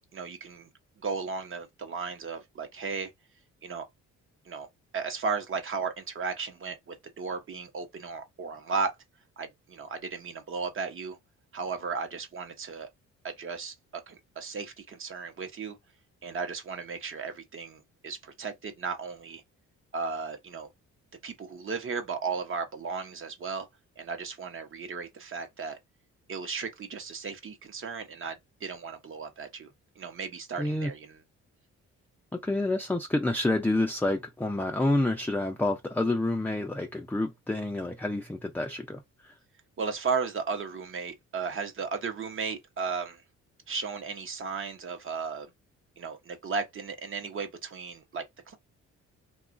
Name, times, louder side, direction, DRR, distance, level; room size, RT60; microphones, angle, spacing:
voice 1, 0.1-0.7 1.0-3.1 3.6-3.9 4.5-4.7 4.9-8.9 9.4-11.2 11.5-12.9 13.2-13.7 14.1-15.8 16.2-19.4 19.9-20.7 21.2-23.7 24.0-25.8 26.3-28.4 28.6-29.7 30.0-31.2 39.8-43.2 43.7-45.5 46.0-48.6, right 5 dB, 45° right, 0.9 m, -35 dB
voice 2, 30.6-30.9 32.3-39.3, left 2 dB, 5° left, 0.4 m, -28 dB
2.9 x 2.3 x 2.5 m
cardioid pair, 90°, 30 cm